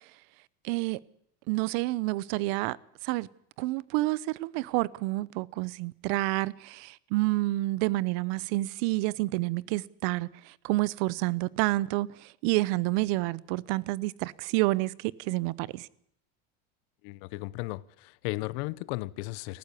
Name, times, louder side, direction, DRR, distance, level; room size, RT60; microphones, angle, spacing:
voice 1, 0.6-1.0 1.5-2.8 3.0-3.3 3.6-15.9, right 20 dB, 70° right, 0.8 m, -29 dB
voice 2, 17.0-19.6, left 21 dB, 75° left, 0.8 m, -35 dB
18.5 x 15.0 x 9.8 m
cardioid pair, 145°, 31 cm